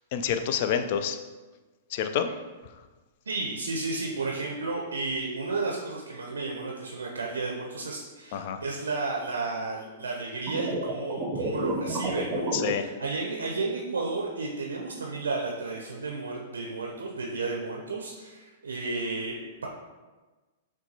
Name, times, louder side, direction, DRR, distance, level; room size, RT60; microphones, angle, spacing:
voice 1, 0.1-1.2 1.9-2.3 8.3-8.6 12.5-12.8, left 8 dB, 50° left, 8 dB, 0.3 m, -27 dB
voice 2, 3.2-19.7, right 3 dB, 80° right, -1 dB, 0.5 m, -32 dB
sound 1, 10.5-12.7, right 2 dB, 20° right, 0.7 m, -30 dB
5.9 x 2.2 x 2.7 m, 1.2 s
figure-of-eight pair, 105°, 0 cm